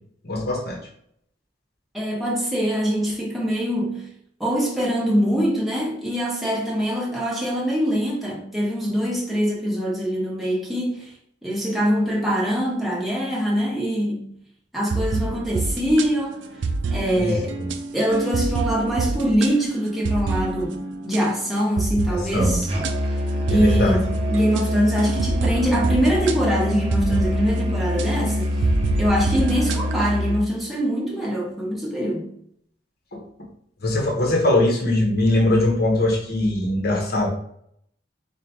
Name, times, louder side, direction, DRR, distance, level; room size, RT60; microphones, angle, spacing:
voice 1, 0.2-0.8 17.2-17.4 22.3-22.6 23.5-24.0 33.1-33.2 33.8-37.3, left 1 dB, 55° left, 1.0 m, -21 dB
voice 2, 1.9-4.1 4.4-11.1 11.4-14.3 14.7-16.4 16.9-17.5 17.9-22.7 23.0-23.2 23.5-28.6 29.0-32.3, equal, ahead, 1.0 m, -23 dB
sound 1, 14.9-21.3 21.8-27.7 28.0-28.1 28.6-30.0, right 3 dB, 70° right, 0.4 m, -27 dB
Musical instrument, 22.7-30.5, left 1 dB, 30° right, 0.7 m, -25 dB
4.5 x 2.4 x 3.6 m
head